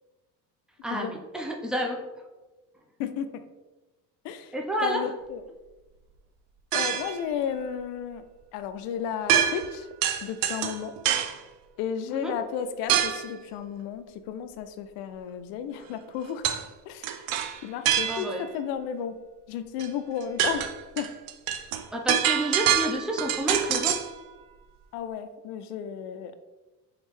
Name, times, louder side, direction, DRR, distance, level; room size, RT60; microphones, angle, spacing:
voice 1, 0.8-2.0 4.5-5.0 12.1-12.3 18.1-18.4 21.9-23.9, right 1 dB, ahead, 0 dB, 0.6 m, -29 dB
voice 2, 3.0-3.4 4.2-4.5 4.8-5.4 6.7-8.2 8.5-9.9 10.2-10.9 11.8-16.4 16.9-17.1 17.6-19.2 19.5-20.7 21.0-21.1 24.9-26.4, left 8 dB, 65° left, 10 dB, 0.5 m, -33 dB
sound 1, 6.7-7.2 9.3-9.7 10.0-11.4 12.9-13.3 16.4-16.6 17.0-18.5 19.8-19.9 20.2-24.1, right 10 dB, 65° right, 0.5 m, -26 dB
3.5 x 3.2 x 3.1 m, 1.1 s
hypercardioid pair, 70°, 46 cm